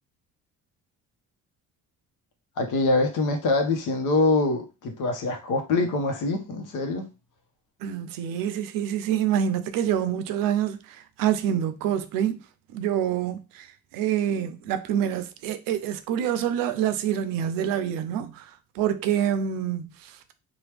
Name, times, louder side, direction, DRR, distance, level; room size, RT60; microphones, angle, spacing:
voice 1, 2.6-7.1, left 3 dB, 70° left, 0.9 m, -24 dB
voice 2, 7.8-12.4 12.7-20.4, right 10 dB, 80° right, 0.5 m, -27 dB
2.9 x 2.3 x 3.3 m
supercardioid pair, 70°, 33 cm